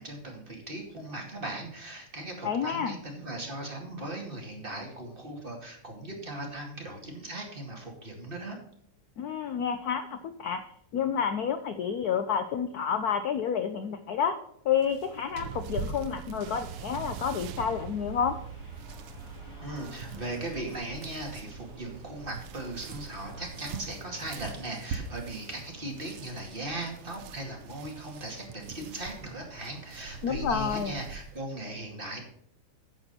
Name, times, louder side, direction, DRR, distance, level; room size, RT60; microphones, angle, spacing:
voice 1, 0.0-8.6 19.6-32.2, right 2 dB, 25° right, 0 dB, 2.4 m, -38 dB
voice 2, 2.4-3.0 9.2-10.6 10.9-14.4 14.6-18.3 30.2-31.0, left 7 dB, 65° left, 9 dB, 0.9 m, -29 dB
sound 1, 14.8-31.4, right 5 dB, 90° right, 1.9 m, -44 dB
sound 2, 15.4-24.1 24.9-25.0, right 10 dB, 70° right, 1.3 m, -44 dB
sound 3, 17.2-23.5, right 2 dB, 45° left, 5.3 m, -47 dB
10.5 x 7.8 x 4.3 m, 0.72 s
omnidirectional pair, 2.4 m